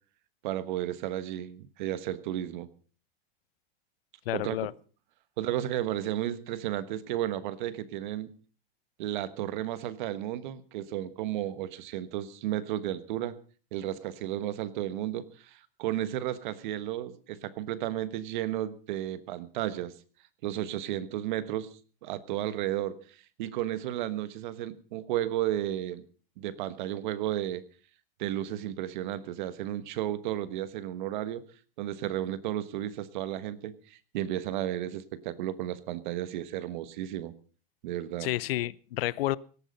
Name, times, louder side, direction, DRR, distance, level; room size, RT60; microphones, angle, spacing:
voice 1, 0.4-2.7 4.3-4.6 5.4-8.3 9.0-13.4 13.7-19.9 20.4-21.7 22.0-26.0 26.4-27.6 28.2-31.4 31.8-37.3 37.8-38.3, right 12 dB, 55° right, 15 dB, 1.3 m, -33 dB
voice 2, 4.3-4.7 38.2-39.4, left 16 dB, 75° left, 21 dB, 0.7 m, -30 dB
17.5 x 13.0 x 5.3 m, 0.39 s
supercardioid pair, 175°, 29 cm